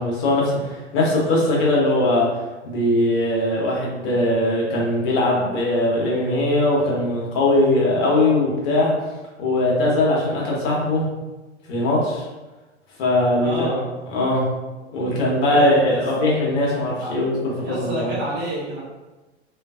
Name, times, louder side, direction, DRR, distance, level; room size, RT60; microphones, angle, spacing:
voice 1, 0.0-2.3 2.6-8.9 9.4-11.1 11.7-12.3 13.0-13.8 14.1-14.4 14.9-17.4 17.7-18.1, left 1 dB, 50° left, -3 dB, 1.0 m, -20 dB
voice 2, 13.4-13.9 15.4-16.0 17.0-17.1 17.6-18.8, equal, 30° right, -7 dB, 1.2 m, -29 dB
2.4 x 2.4 x 2.4 m, 1.1 s
figure-of-eight pair, 90°, 34 cm